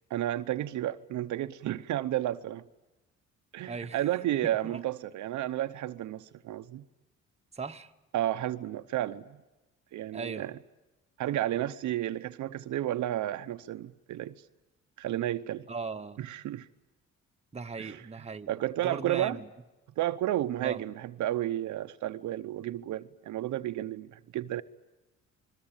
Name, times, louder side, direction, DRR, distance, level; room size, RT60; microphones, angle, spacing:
voice 1, 0.1-2.6 3.5-6.8 8.1-9.4 9.9-10.6 11.2-14.4 15.0-15.7 16.2-16.7 17.8-18.0 18.5-19.4 20.0-24.6, right 13 dB, 75° right, 0.8 m, -32 dB
voice 2, 3.7-4.1 4.4-4.8 7.5-7.9 10.1-10.6 15.7-16.3 17.5-18.5 18.8-19.5 20.6-20.8, right 4 dB, 20° right, 1.1 m, -38 dB
27.0 x 21.0 x 8.9 m
cardioid pair, 90°, 30 cm